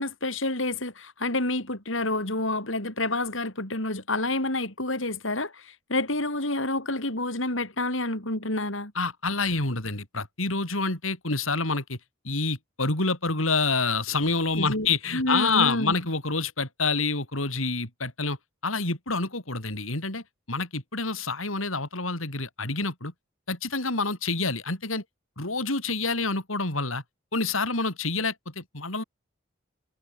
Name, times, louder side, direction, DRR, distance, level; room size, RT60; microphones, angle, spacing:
voice 1, 0.0-8.9 14.6-15.9, left 2 dB, 70° left, 7.2 m, -28 dB
voice 2, 8.9-12.0 12.2-18.4 18.6-23.1 23.5-25.0 25.4-27.0 27.3-29.0, left 3 dB, 85° left, 6.7 m, -27 dB
head